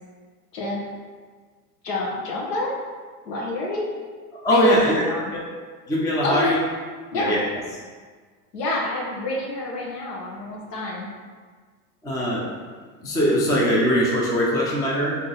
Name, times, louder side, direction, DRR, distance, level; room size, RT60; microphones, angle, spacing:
voice 1, 0.5-0.8 1.8-2.7 3.2-3.9 4.5-5.3 6.2-6.5 7.1-7.4 8.5-11.1, left 2 dB, 75° left, -3 dB, 1.1 m, -28 dB
voice 2, 4.3-5.0 5.3-5.4 5.9-6.6 7.1-7.4 12.0-12.5 13.0-15.2, equal, 10° left, -4 dB, 0.4 m, -21 dB
3.6 x 2.8 x 3.9 m, 1.5 s
hypercardioid pair, 110°, 49 cm